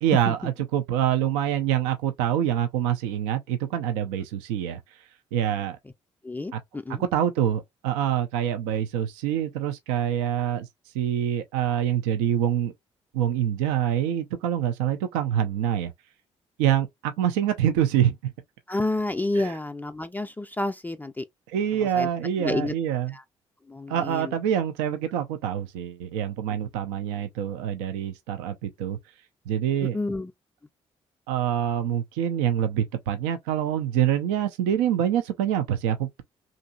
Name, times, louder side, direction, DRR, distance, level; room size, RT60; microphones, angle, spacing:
voice 1, 0.0-4.8 5.3-5.8 6.5-6.6 7.0-10.7 10.9-12.7 13.1-15.9 16.6-18.3 19.3-19.6 21.5-23.2 23.9-29.0 29.5-30.0 31.3-36.2, right 10 dB, 80° right, 0.4 m, -25 dB
voice 2, 6.2-7.0 18.7-21.2 22.0-22.1 22.4-22.7 23.7-24.2 29.9-30.3, left 2 dB, 10° left, 0.4 m, -29 dB
2.8 x 2.5 x 2.3 m
hypercardioid pair, 45°, 15 cm